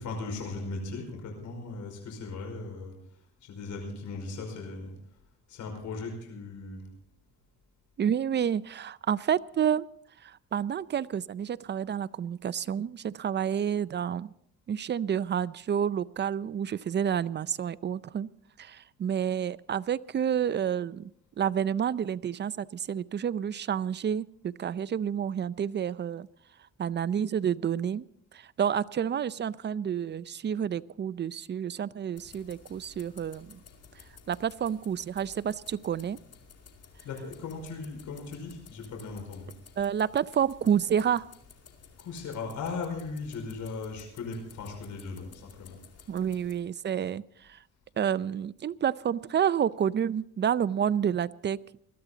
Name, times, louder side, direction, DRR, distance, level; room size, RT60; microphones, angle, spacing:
voice 1, 0.0-4.9 5.5-6.9 37.0-39.5 42.0-45.8, left 3 dB, 75° left, 2 dB, 5.2 m, -38 dB
voice 2, 8.0-9.9 10.2-14.3 14.7-18.3 18.6-21.1 21.4-26.3 26.8-28.0 28.3-33.6 34.3-36.2 39.8-41.3 46.1-47.6 48.0-51.6, right 8 dB, 35° right, 18 dB, 0.5 m, -29 dB
sound 1, 32.2-46.6, left 6 dB, 55° left, 2.5 m, -54 dB
21.5 x 13.0 x 4.0 m, 0.69 s
cardioid pair, 90°, 30 cm